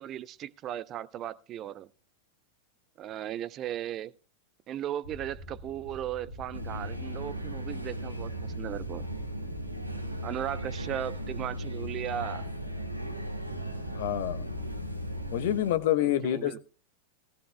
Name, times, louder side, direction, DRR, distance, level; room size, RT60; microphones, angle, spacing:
voice 1, 0.0-1.9 3.0-4.1 4.7-9.1 10.2-12.4 16.0-16.6, right 11 dB, 30° right, 0.5 m, -37 dB
sound 1, 5.0-15.3, equal, 75° left, 2.0 m, -45 dB
sound 2, 6.5-15.8, equal, 90° right, 1.8 m, -37 dB
voice 2, 13.9-14.5 15.3-16.6, left 12 dB, 55° left, 1.0 m, -27 dB
18.0 x 16.0 x 2.2 m
figure-of-eight pair, 90°, 0 cm